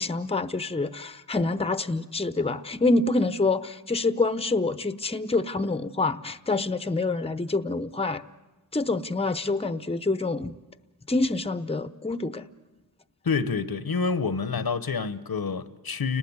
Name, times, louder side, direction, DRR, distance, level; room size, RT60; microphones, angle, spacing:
voice 1, 0.0-8.2 8.7-10.5 11.1-12.5, left 3 dB, 15° left, 0.8 m, -26 dB
voice 2, 13.2-16.2, left 5 dB, 70° left, 1.0 m, -27 dB
29.5 x 19.0 x 9.6 m
wide cardioid pair, 55°, 38 cm